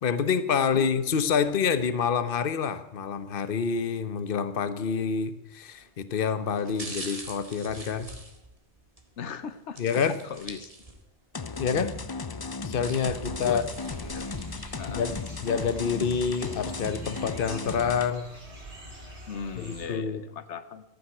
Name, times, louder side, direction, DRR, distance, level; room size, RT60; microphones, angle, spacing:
voice 1, 0.0-8.1 9.8-10.2 11.6-11.9 12.6-13.6 14.9-15.1 15.4-18.3 19.6-20.2, left 6 dB, 55° left, 13 dB, 1.1 m, -27 dB
sound 1, 5.5-5.8 6.5-9.1 9.8-11.2 11.6-11.7 12.5-14.6 15.1-15.2, right 2 dB, 30° right, 2.1 m, -43 dB
voice 2, 9.2-9.8 10.3-10.7 13.4-13.6 14.0-14.3 14.8-15.0 19.3-20.8, left 7 dB, 90° left, 12 dB, 1.2 m, -37 dB
sound 2, 11.3-18.1, left 4 dB, 30° left, 0.4 m, -36 dB
sound 3, 13.3-19.9, right 1 dB, 75° right, 4.0 m, -45 dB
14.5 x 9.4 x 8.0 m, 0.94 s
omnidirectional pair, 1.2 m